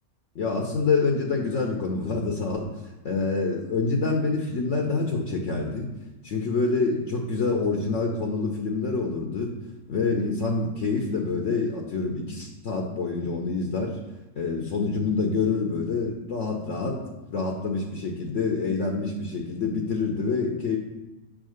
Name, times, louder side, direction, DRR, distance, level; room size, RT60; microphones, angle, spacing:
voice 1, 0.3-2.7 3.0-5.9 6.2-9.6 9.9-14.0 14.4-17.0 17.3-20.8, left 4 dB, 60° left, 1 dB, 1.1 m, -26 dB
8.2 x 3.7 x 6.4 m, 1.1 s
omnidirectional pair, 1.6 m